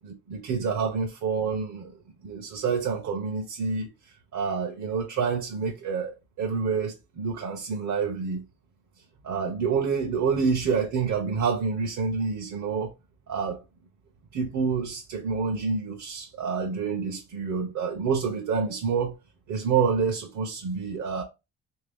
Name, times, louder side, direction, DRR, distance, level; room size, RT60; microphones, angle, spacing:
voice 1, 0.3-1.9 2.2-3.9 4.3-8.4 9.2-12.9 13.3-13.6 14.3-19.2 19.5-21.2, right 5 dB, 70° right, 0.9 m, -28 dB
3.3 x 2.9 x 3.5 m
cardioid pair, 90°, 30 cm